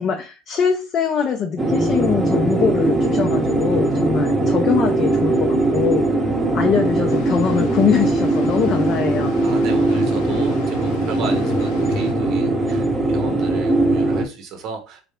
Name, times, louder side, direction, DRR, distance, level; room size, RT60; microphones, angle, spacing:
voice 1, 0.0-6.1 6.5-9.3, left 7 dB, 35° left, 4 dB, 0.5 m, -22 dB
sound 1, 1.6-14.2, right 2 dB, 10° right, 0.8 m, -20 dB
Water, 7.1-12.1, left 6 dB, 70° left, 0.7 m, -39 dB
voice 2, 9.4-15.0, right 5 dB, 45° right, 6 dB, 0.7 m, -33 dB
3.7 x 3.3 x 3.3 m, 0.31 s
cardioid pair, 155°, 0 cm